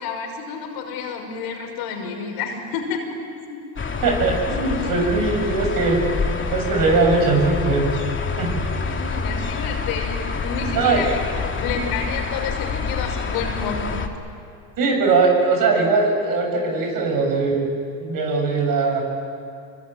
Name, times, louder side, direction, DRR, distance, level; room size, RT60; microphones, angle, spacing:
voice 1, 0.0-3.2 3.5-3.6 8.8-13.9, left 5 dB, 75° left, 2 dB, 5.8 m, -30 dB
sound 1, 3.8-14.1, left 5 dB, 30° left, 2.6 m, -27 dB
voice 2, 4.0-7.9 8.4-8.5 10.8-11.0 14.8-17.7 18.0-19.0, right 3 dB, 60° right, 2 dB, 7.6 m, -20 dB
26.0 x 23.5 x 9.3 m, 2.4 s
supercardioid pair, 85°, 39 cm